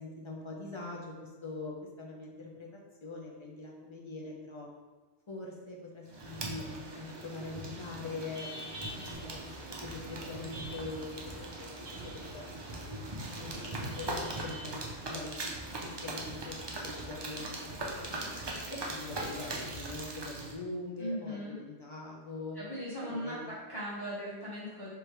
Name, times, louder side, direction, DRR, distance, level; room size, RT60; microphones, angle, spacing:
voice 1, 0.0-2.7 3.0-4.7 5.3-6.7 6.9-9.5 9.8-11.7 12.0-13.0 13.3-14.8 15.1-18.3 18.7-22.6 23.0-23.5, left 3 dB, 50° left, -3 dB, 0.3 m, -43 dB
sound 1, 6.1-20.5, right 1 dB, 40° right, 0.4 m, -40 dB
sound 2, 9.1-20.5, right 2 dB, 60° right, 0.8 m, -50 dB
voice 2, 21.0-21.6 22.5-24.9, equal, 20° left, -9 dB, 1.2 m, -38 dB
3.3 x 3.2 x 4.6 m, 1.3 s
omnidirectional pair, 1.2 m